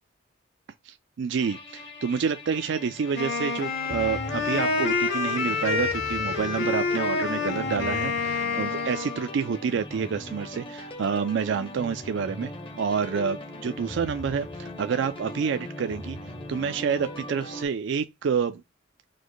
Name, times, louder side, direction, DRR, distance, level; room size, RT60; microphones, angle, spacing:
voice 1, 0.8-12.5 12.8-16.2 16.5-18.6, right 6 dB, 65° right, 0.4 m, -28 dB
sound 1, 1.4-17.7, left 1 dB, 25° left, 0.7 m, -39 dB
Wind instrument woodwind instrument, 3.1-9.3, left 4 dB, 65° left, 1.6 m, -28 dB
4.9 x 2.2 x 3.9 m
head